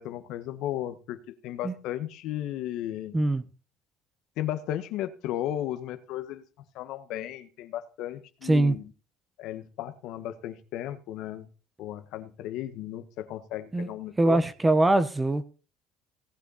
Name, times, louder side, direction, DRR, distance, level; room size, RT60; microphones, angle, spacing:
voice 1, 0.0-3.2 4.4-6.4 6.7-8.9 9.4-11.5 11.8-14.4, left 12 dB, 70° left, 1.4 m, -35 dB
voice 2, 8.4-8.8 13.7-13.9 14.2-15.4, right 2 dB, 15° right, 1.2 m, -22 dB
18.5 x 8.2 x 4.2 m
supercardioid pair, 100°, 0 cm